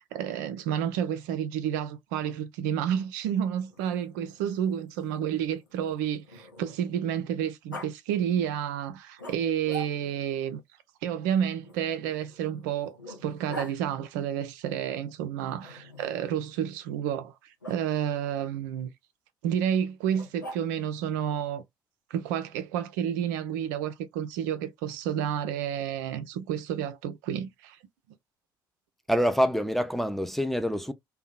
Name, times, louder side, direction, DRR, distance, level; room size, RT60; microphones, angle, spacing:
voice 1, 0.1-10.6 11.0-17.4 17.7-18.9 19.4-21.6 22.1-27.8, right 9 dB, 65° right, 0.4 m, -30 dB
Growling, 3.6-7.0 7.7-7.9 9.2-10.3 11.6-13.8 15.6-16.3 17.6-17.8 20.1-21.0, equal, 90° left, 0.5 m, -44 dB
voice 2, 29.1-30.9, equal, ahead, 0.4 m, -26 dB
2.6 x 2.1 x 2.2 m
figure-of-eight pair, 45°, 10 cm